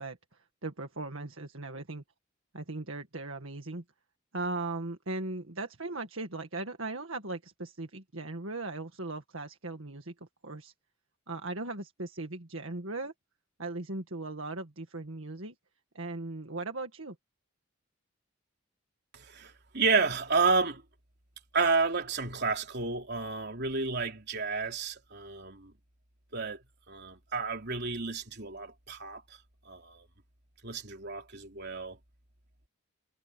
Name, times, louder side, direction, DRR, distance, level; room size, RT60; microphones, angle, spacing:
voice 1, 0.0-2.0 2.5-3.8 4.3-10.1 10.4-10.7 11.3-13.1 13.6-15.6 15.9-17.2, right 2 dB, 65° right, 1.9 m, -38 dB
voice 2, 19.1-20.8 21.5-25.7 26.3-26.6 26.9-29.2 29.7-30.1 30.6-32.0, right 4 dB, 50° right, 3.6 m, -31 dB
head